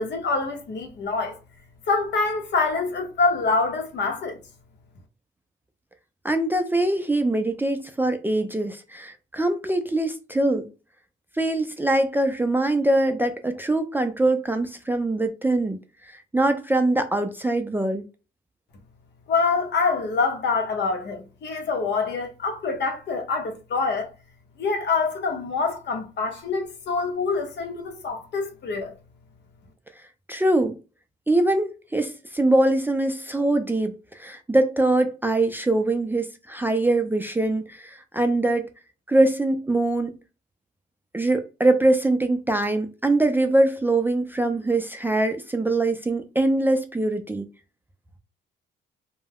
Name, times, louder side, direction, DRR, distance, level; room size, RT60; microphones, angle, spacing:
voice 1, 0.0-1.4 1.9-4.4 19.3-24.1 24.6-28.9, left 4 dB, 65° left, 0.9 m, -25 dB
voice 2, 6.2-10.7 11.4-15.8 16.3-18.0 30.3-30.8 31.3-33.9 34.2-38.6 39.1-40.1 41.1-47.5, right 2 dB, 10° right, 0.4 m, -23 dB
2.3 x 2.2 x 3.4 m
cardioid pair, 90°, 20 cm